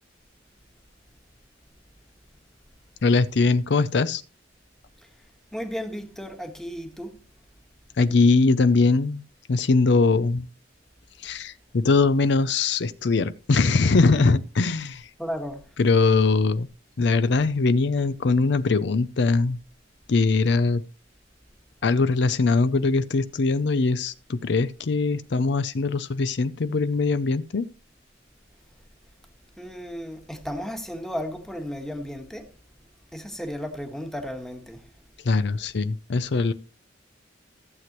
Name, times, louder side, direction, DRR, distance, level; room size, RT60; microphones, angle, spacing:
voice 1, 3.0-4.2 8.0-9.2 9.5-10.5 11.2-15.1 15.8-16.7 17.0-19.6 20.1-20.8 21.8-27.7 35.2-36.5, left 3 dB, 65° left, 0.5 m, -21 dB
voice 2, 5.5-7.2 15.2-15.7 29.6-32.5 33.1-34.8, equal, ahead, 1.3 m, -34 dB
14.5 x 7.7 x 3.0 m
head